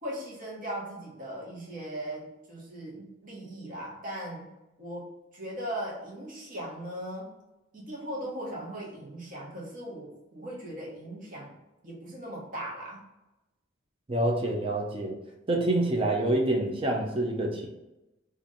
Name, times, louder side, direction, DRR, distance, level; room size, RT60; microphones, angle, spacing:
voice 1, 0.0-4.5 4.8-7.3 7.7-11.6 11.8-13.0, right 1 dB, 45° right, -3 dB, 1.1 m, -38 dB
voice 2, 14.1-15.2 15.5-17.7, right 1 dB, 30° right, 1 dB, 0.6 m, -27 dB
2.9 x 2.6 x 3.9 m, 0.96 s
head